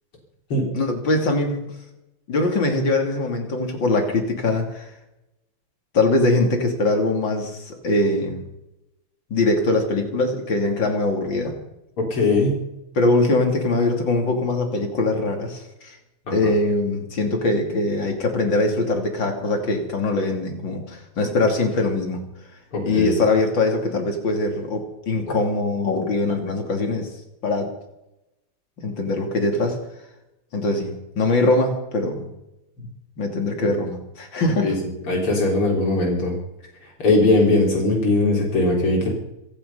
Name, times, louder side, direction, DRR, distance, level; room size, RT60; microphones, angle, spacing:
voice 1, 0.7-1.7 2.3-4.9 5.9-8.4 9.3-11.6 13.0-16.0 16.3-22.2 22.8-27.1 27.4-27.7 28.8-29.8 30.5-32.3 32.8-32.9 33.2-34.8, left 2 dB, 60° left, 3 dB, 3.4 m, -22 dB
voice 2, 12.0-12.6 16.3-16.5 22.7-23.2 33.6-33.8 34.6-34.7 35.1-36.3 37.0-39.1, left 2 dB, 80° left, -2 dB, 4.6 m, -20 dB
26.0 x 9.5 x 5.6 m, 0.90 s
omnidirectional pair, 2.4 m